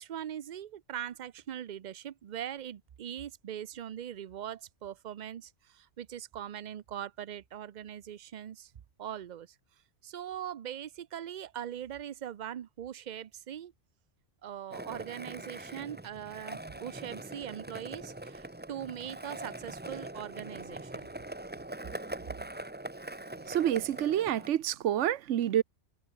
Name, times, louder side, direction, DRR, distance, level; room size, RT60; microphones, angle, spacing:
voice 1, 0.0-8.7 9.0-9.5 10.0-13.7 14.4-21.1, right 10 dB, 50° right, 0.6 m, -41 dB
Skateboard, 14.7-24.5, right 1 dB, 10° right, 0.8 m, -42 dB
voice 2, 23.5-25.6, right 11 dB, 80° right, 1.1 m, -28 dB
omnidirectional pair, 1.2 m